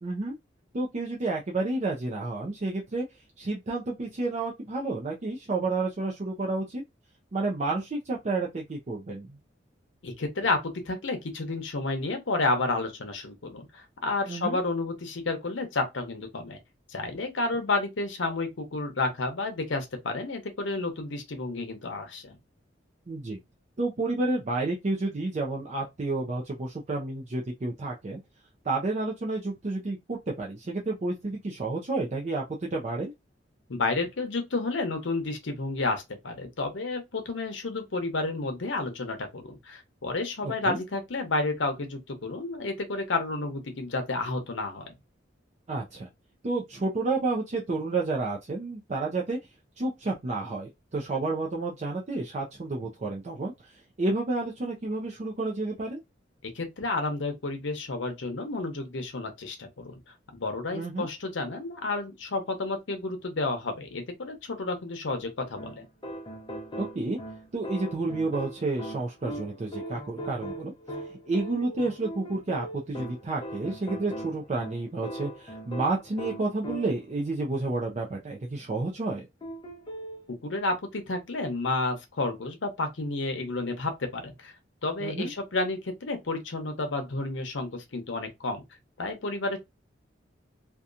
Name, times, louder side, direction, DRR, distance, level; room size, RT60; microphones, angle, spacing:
voice 1, 0.0-0.4 0.7-3.0 3.4-6.8 7.3-9.4 14.3-14.6 23.1-23.4 23.8-28.2 28.6-33.1 40.4-40.8 45.7-46.1 46.4-49.4 49.8-53.7 54.0-56.0 60.7-61.1 66.9-67.2 67.5-70.7 71.3-79.3 85.0-85.3, right 3 dB, 40° right, 0.5 m, -30 dB
voice 2, 10.0-16.6 16.9-22.4 33.7-44.9 56.4-59.9 60.3-65.9 80.3-84.5 84.8-88.6 89.0-89.6, left 3 dB, 80° left, 0.8 m, -31 dB
sound 1, 65.6-77.2 79.4-80.2, right 1 dB, 25° left, 0.6 m, -40 dB
2.8 x 2.2 x 2.4 m
head